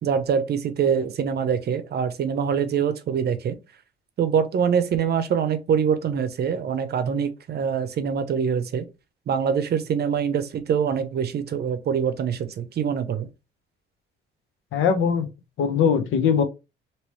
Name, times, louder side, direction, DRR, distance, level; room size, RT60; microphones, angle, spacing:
voice 1, 0.0-3.6 4.2-8.9 9.3-13.3, right 7 dB, 55° right, 0.6 m, -24 dB
voice 2, 14.7-15.3 15.6-16.4, left 7 dB, 80° left, 0.8 m, -20 dB
3.1 x 2.9 x 3.1 m
cardioid pair, 90°, 20 cm